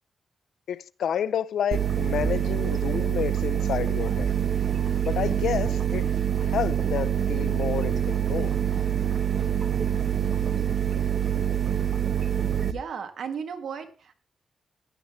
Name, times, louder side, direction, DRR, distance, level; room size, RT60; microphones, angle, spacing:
voice 1, 0.7-4.3 5.1-6.1 6.4-8.5, left 9 dB, 80° left, 0.5 m, -30 dB
sound 1, 1.7-12.7, right 9 dB, 45° right, 0.9 m, -25 dB
voice 2, 12.6-14.2, right 6 dB, 75° right, 1.9 m, -35 dB
16.0 x 11.0 x 3.2 m
wide cardioid pair, 130°, 0 cm